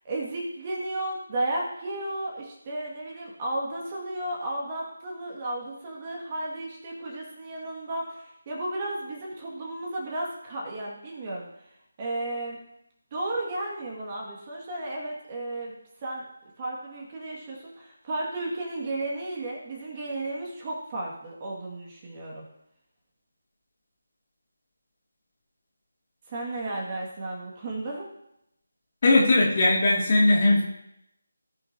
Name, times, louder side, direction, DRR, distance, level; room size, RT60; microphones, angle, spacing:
voice 1, 0.0-11.5 12.0-12.6 13.1-15.8 16.0-16.2 16.6-22.4 26.3-28.1, right 1 dB, 25° right, -3 dB, 2.2 m, -33 dB
voice 2, 29.0-30.6, left 2 dB, 40° left, -3 dB, 2.8 m, -19 dB
18.0 x 6.3 x 2.9 m, 0.82 s
figure-of-eight pair, 160°, 0 cm